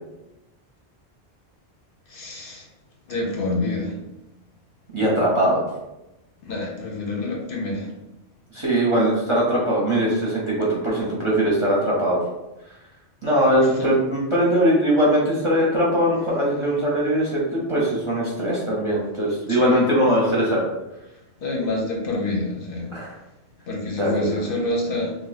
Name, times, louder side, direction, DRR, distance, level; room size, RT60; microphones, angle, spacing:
voice 1, 2.1-2.7 3.1-4.0 6.4-7.9 13.8-13.9 19.6-19.9 21.4-22.9 23.7-25.1, left 2 dB, 60° left, -1 dB, 0.8 m, -27 dB
voice 2, 4.9-5.6 8.5-12.2 13.2-20.6 22.9-23.1 23.9-24.4, equal, 35° right, -5 dB, 0.6 m, -21 dB
2.6 x 2.2 x 4.0 m, 0.94 s
omnidirectional pair, 1.1 m